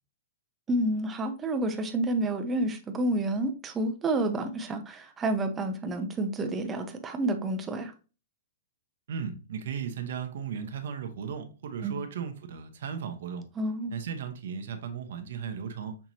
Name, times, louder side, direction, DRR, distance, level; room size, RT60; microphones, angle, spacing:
voice 1, 0.7-7.9 11.8-12.0 13.6-13.9, right 1 dB, 10° right, 0.5 m, -29 dB
voice 2, 9.1-13.5 13.9-16.0, right 7 dB, 60° right, 0.9 m, -36 dB
5.8 x 3.0 x 2.7 m
hypercardioid pair, 165°, 0 cm